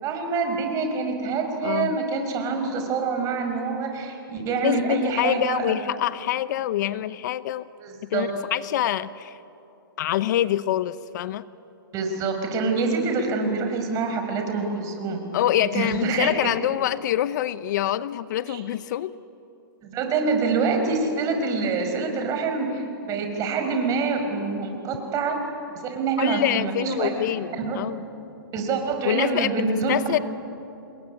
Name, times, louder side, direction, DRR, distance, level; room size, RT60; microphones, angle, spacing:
voice 1, 0.0-5.8 7.8-8.3 11.9-15.2 15.6-16.5 18.5-18.6 19.8-25.4 25.8-27.8 28.5-30.1, right 4 dB, 30° right, 4 dB, 5.4 m, -26 dB
voice 2, 1.6-2.0 4.6-7.7 8.0-9.4 10.0-11.4 15.3-19.1 26.2-28.0 29.0-30.2, left 12 dB, 50° left, 16 dB, 0.8 m, -25 dB
28.5 x 21.0 x 9.7 m, 2.8 s
hypercardioid pair, 135°, 12 cm